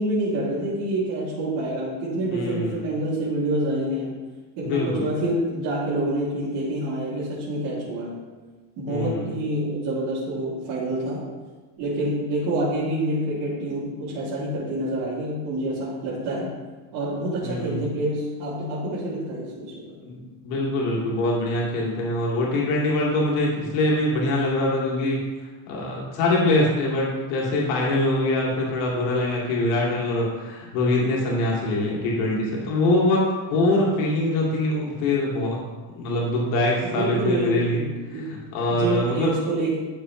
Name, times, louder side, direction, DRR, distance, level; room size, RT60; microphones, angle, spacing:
voice 1, 0.0-4.2 4.6-8.2 8.8-11.2 11.8-16.5 16.9-20.0 36.8-38.3 38.7-39.8, right 1 dB, 75° right, -9 dB, 2.9 m, -27 dB
voice 2, 2.3-2.8 4.6-5.1 8.9-9.3 17.4-17.8 20.0-25.2 25.7-33.2 33.5-35.6 35.9-37.8 38.1-39.3, left 1 dB, 85° left, -4 dB, 2.4 m, -23 dB
11.5 x 6.7 x 3.2 m, 1.3 s
cardioid pair, 155°, 41 cm